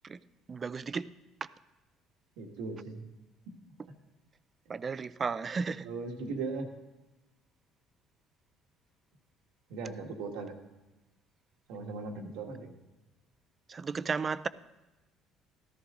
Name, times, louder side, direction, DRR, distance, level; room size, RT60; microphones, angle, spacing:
voice 1, 0.5-1.1 1.4-1.5 4.7-5.9 13.7-14.5, right 5 dB, 30° right, 16 dB, 0.4 m, -34 dB
voice 2, 2.4-3.0 5.8-6.7 9.7-10.5 11.7-12.7, right 4 dB, 90° right, 2 dB, 1.8 m, -38 dB
14.0 x 13.5 x 3.8 m, 1.1 s
cardioid pair, 120°, 0 cm